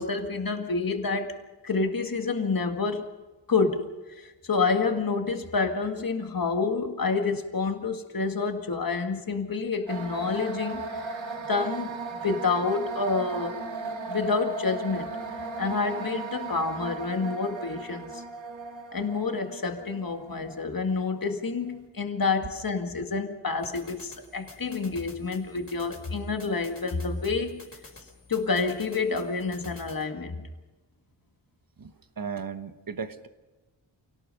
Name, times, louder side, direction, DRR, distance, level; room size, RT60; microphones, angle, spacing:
voice 1, 0.0-1.3 1.6-3.1 3.5-11.1 11.5-13.6 14.1-15.1 15.6-18.2 18.9-27.6 28.3-30.5, left 4 dB, 45° left, 5 dB, 2.0 m, -28 dB
sound 1, 9.9-21.7, right 4 dB, 80° right, 2.2 m, -37 dB
sound 2, 23.6-30.0, left 2 dB, 30° left, 4.9 m, -50 dB
voice 2, 31.8-33.3, right 6 dB, 45° right, 10 dB, 1.3 m, -36 dB
28.5 x 18.0 x 5.5 m, 1.1 s
wide cardioid pair, 115°, 46 cm